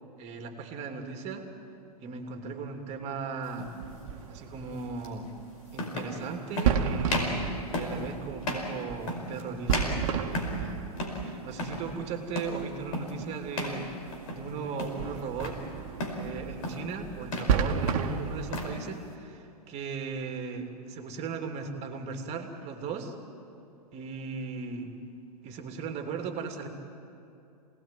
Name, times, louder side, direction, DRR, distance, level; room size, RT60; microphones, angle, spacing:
voice 1, 0.2-1.5 2.0-3.7 4.3-5.3 5.7-10.8 11.2-13.9 14.3-15.6 16.1-23.1 23.9-24.9 25.4-26.7, right 5 dB, 35° right, 5 dB, 2.9 m, -37 dB
sound 1, 3.5-3.7 5.0-5.1 5.7-6.2 6.6-6.8 7.1-7.4 7.7-8.0 8.4-8.7 9.1-9.4 9.7-10.7 11.0-11.3 11.5-11.9 12.4-12.6 12.9-13.2 13.5-13.8 14.1-14.5 14.8-15.6 16.0-16.3 16.6-16.9 17.2-17.6 17.9-18.8, left 1 dB, 60° left, 5.0 m, -34 dB
sound 2, 3.7-18.8, right 7 dB, 55° right, 1.9 m, -33 dB
27.5 x 19.0 x 9.2 m, 2.7 s
hypercardioid pair, 110°, 20 cm